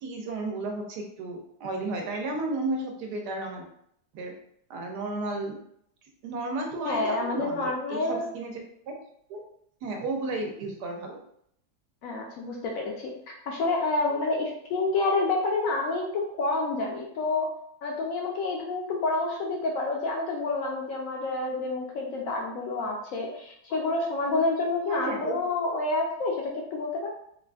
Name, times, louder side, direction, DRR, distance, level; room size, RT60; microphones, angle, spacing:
voice 1, 0.0-3.7 4.1-4.3 4.7-5.6 6.2-8.5 9.3-9.4 9.8-11.2 24.8-25.5, right 2 dB, 85° right, 2 dB, 1.2 m, -33 dB
voice 2, 6.8-8.3 12.0-13.1 13.5-17.5 17.8-27.1, left 3 dB, 70° left, -1 dB, 0.8 m, -28 dB
3.4 x 2.5 x 2.2 m, 0.70 s
omnidirectional pair, 1.7 m